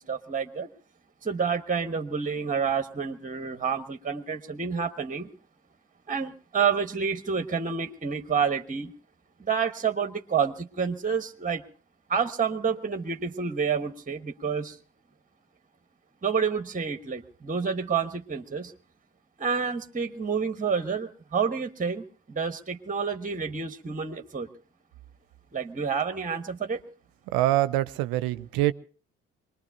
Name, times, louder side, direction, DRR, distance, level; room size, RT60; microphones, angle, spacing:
voice 1, 0.1-0.7 1.2-5.3 6.1-8.9 9.4-11.6 12.1-14.8 16.2-18.7 19.4-24.5 25.5-26.8, right 6 dB, 20° right, 1.2 m, -29 dB
voice 2, 27.3-28.7, right 15 dB, 65° right, 0.7 m, -24 dB
24.0 x 20.5 x 2.7 m
hypercardioid pair, 50°, 38 cm